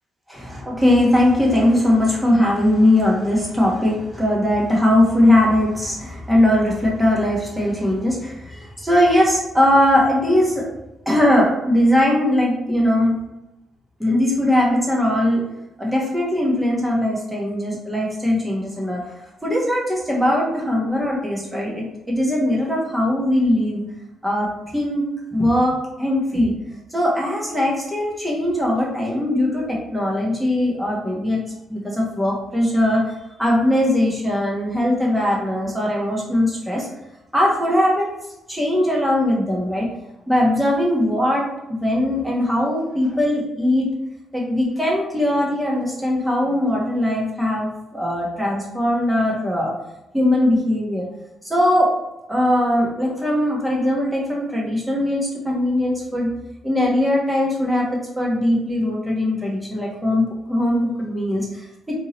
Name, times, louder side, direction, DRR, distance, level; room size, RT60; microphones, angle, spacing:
voice 1, 0.3-10.6 11.0-13.1 14.0-15.4 15.8-19.0 19.4-23.8 24.2-24.5 24.7-25.1 25.3-26.5 26.9-31.4 31.7-36.9 37.3-38.1 38.5-39.9 40.3-41.5 41.8-43.9 44.3-49.7 50.1-51.1 51.4-51.9 52.3-56.3 56.6-57.9 58.2-62.0, left 1 dB, 5° right, -4 dB, 1.3 m, -20 dB
3.5 x 2.9 x 3.0 m, 0.92 s
cardioid pair, 90°, 0 cm